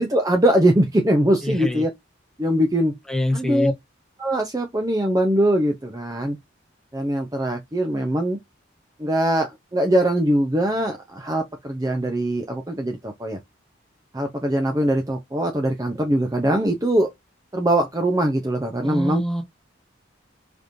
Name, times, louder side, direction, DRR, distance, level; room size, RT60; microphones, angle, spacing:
voice 1, 0.0-1.9 2.4-2.9 3.3-3.7 4.2-6.4 6.9-8.4 9.0-13.4 14.1-17.1 17.5-19.2, right 1 dB, 20° right, 0.5 m, -22 dB
voice 2, 1.4-1.8 3.1-3.7 18.8-19.4, left 1 dB, 5° left, 1.0 m, -25 dB
5.0 x 3.0 x 2.6 m
head